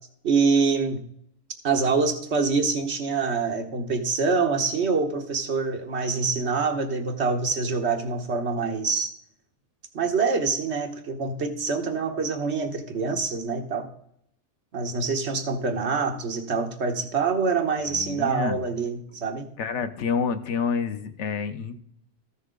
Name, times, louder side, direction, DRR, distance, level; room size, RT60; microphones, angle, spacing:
voice 1, 0.2-1.0 1.6-9.1 9.9-13.9 14.7-19.4, right 4 dB, 70° right, 5 dB, 1.4 m, -25 dB
voice 2, 17.9-18.6 19.6-21.8, left 6 dB, 80° left, 9 dB, 1.1 m, -28 dB
14.0 x 6.2 x 3.7 m, 0.68 s
omnidirectional pair, 1.2 m